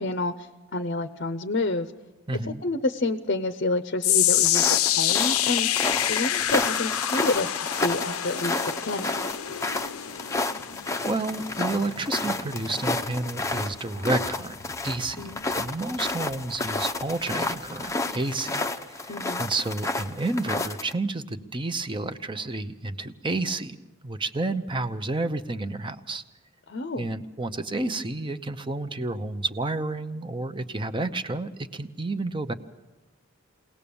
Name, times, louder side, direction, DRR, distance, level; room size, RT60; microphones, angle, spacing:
voice 1, 0.0-1.9 2.5-9.2 15.2-15.4 19.1-19.4 26.7-27.1, left 2 dB, 50° left, 10 dB, 0.7 m, -29 dB
voice 2, 2.3-2.6 11.1-14.6 14.8-15.2 15.5-23.8 24.0-26.2 27.0-32.5, right 2 dB, 25° right, 10 dB, 0.8 m, -30 dB
sound 1, 4.0-16.3 16.7-17.0 17.7-17.8, left 12 dB, 80° left, 0.7 m, -28 dB
sound 2, 4.4-20.9, left 2 dB, 15° left, 0.6 m, -31 dB
23.0 x 18.0 x 7.0 m, 1.1 s
head